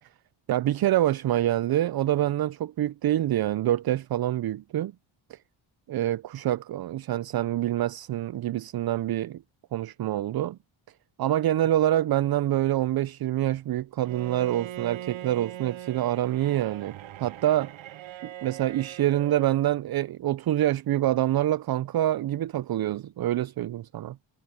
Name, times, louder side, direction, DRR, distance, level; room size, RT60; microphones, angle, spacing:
voice 1, 0.5-4.9 5.3-5.4 5.9-9.4 9.7-10.6 11.2-17.7 18.2-24.2, right 13 dB, 50° right, 0.5 m, -26 dB
Bowed string instrument, 14.0-19.6, right 12 dB, 70° right, 0.8 m, -41 dB
cardioid pair, 90°, 50 cm